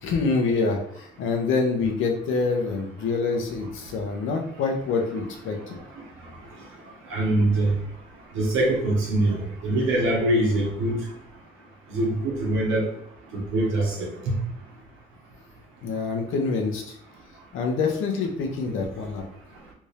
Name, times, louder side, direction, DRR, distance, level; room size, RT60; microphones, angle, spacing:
voice 1, 0.0-5.8 15.8-17.0 17.5-19.2, left 4 dB, 85° left, 2 dB, 0.8 m, -26 dB
voice 2, 7.1-7.7 8.3-9.4 9.6-11.0 11.9-12.8 13.3-14.3, right 1 dB, 90° right, -2 dB, 1.3 m, -23 dB
3.4 x 2.7 x 3.3 m, 0.71 s
cardioid pair, 90°, 20 cm